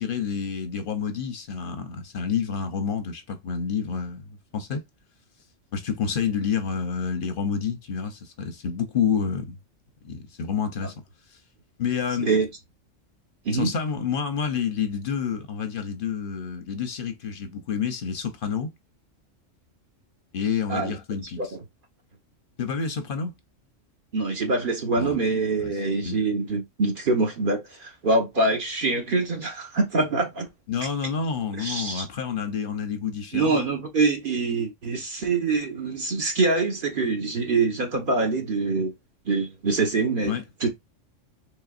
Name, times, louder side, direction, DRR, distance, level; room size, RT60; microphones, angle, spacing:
voice 1, 0.0-4.9 5.7-9.6 10.0-10.9 11.3-11.4 11.8-12.3 13.5-18.7 20.3-21.5 22.6-23.4 25.0-25.2 25.6-26.2 30.7-33.7 40.2-40.4, left 6 dB, 55° left, 0.7 m, -29 dB
voice 2, 24.1-30.5 31.6-32.1 33.3-38.9 39.2-40.7, right 3 dB, 45° right, 1.1 m, -25 dB
3.9 x 3.3 x 2.4 m
omnidirectional pair, 1.3 m